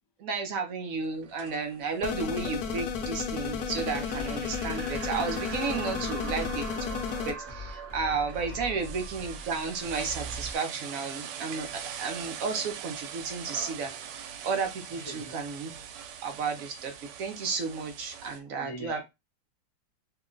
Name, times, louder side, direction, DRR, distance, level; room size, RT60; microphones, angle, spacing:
voice 1, 0.2-6.6 7.2-15.8 16.2-16.9 17.2-19.0, right 5 dB, 65° right, 0.9 m, -33 dB
sound 1, 1.0-18.4, right 8 dB, 80° right, 1.2 m, -42 dB
sound 2, 2.0-7.3, left 6 dB, 70° left, 1.0 m, -33 dB
sound 3, 4.1-10.6, equal, 25° right, 0.6 m, -43 dB
voice 2, 5.8-6.2 8.5-8.6 14.9-15.3 18.6-19.0, left 1 dB, 40° left, 0.3 m, -42 dB
2.9 x 2.1 x 3.7 m
omnidirectional pair, 1.9 m